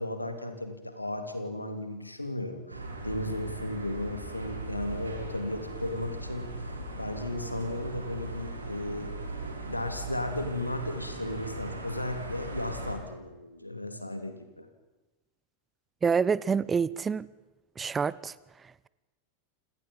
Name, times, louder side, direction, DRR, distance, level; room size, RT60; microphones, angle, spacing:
voice 1, 0.0-6.7 7.0-9.2 9.6-14.7, left 1 dB, 85° left, 3.1 m, -35 dB
sound 1, 2.7-12.9, right 2 dB, 80° right, 5.4 m, -39 dB
voice 2, 16.0-17.3 17.8-18.3, right 6 dB, 15° right, 0.7 m, -27 dB
28.0 x 28.0 x 5.4 m
figure-of-eight pair, 90°, 0 cm